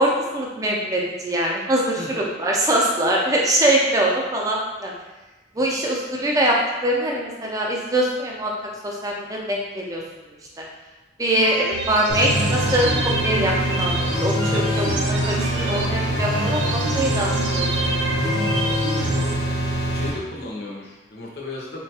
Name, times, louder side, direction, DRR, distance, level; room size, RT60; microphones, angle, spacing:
voice 1, 0.0-4.9 5.5-8.5 8.8-10.0 10.6-10.7 11.2-12.9 13.2-18.2, right 1 dB, 20° right, -2 dB, 0.4 m, -23 dB
sound 1, 11.3-19.3, right 2 dB, 85° right, 0.4 m, -27 dB
sound 2, 12.1-20.1, equal, 90° left, 0.8 m, -24 dB
voice 2, 19.9-21.8, left 2 dB, 60° left, -3 dB, 0.6 m, -35 dB
3.8 x 2.2 x 2.8 m, 1.1 s
head